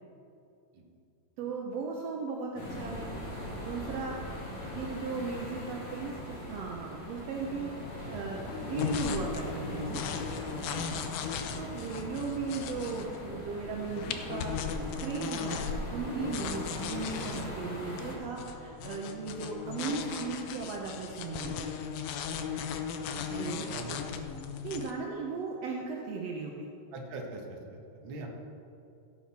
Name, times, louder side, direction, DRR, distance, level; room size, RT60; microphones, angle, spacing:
voice 1, 1.4-3.1 3.6-4.2 4.7-7.7 8.1-10.1 11.6-14.6 15.0-21.7 23.3-23.7 24.6-26.7, right 4 dB, 80° right, 0 dB, 1.5 m, -37 dB
sound 1, 2.6-18.1, left 1 dB, 55° left, 3.4 m, -41 dB
sound 2, 8.5-24.9, left 7 dB, 80° left, 1.6 m, -37 dB
voice 2, 10.5-11.1 15.3-15.6 23.1-24.1 26.9-28.3, right 2 dB, 55° right, 0 dB, 1.5 m, -43 dB
16.5 x 7.8 x 4.3 m, 2.6 s
omnidirectional pair, 4.1 m